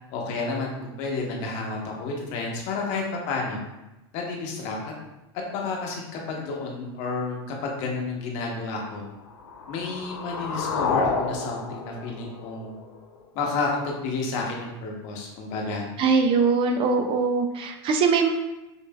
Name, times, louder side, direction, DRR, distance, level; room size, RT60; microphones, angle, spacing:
voice 1, 0.1-3.6 4.1-4.9 5.5-9.0 9.7-12.7 13.3-15.9, left 3 dB, 55° left, -1 dB, 1.0 m, -30 dB
sound 1, 9.2-13.2, left 4 dB, 85° left, 0.5 m, -30 dB
voice 2, 16.0-18.3, right 5 dB, 40° right, 5 dB, 0.4 m, -22 dB
5.4 x 2.5 x 2.3 m, 0.99 s
hypercardioid pair, 105°, 14 cm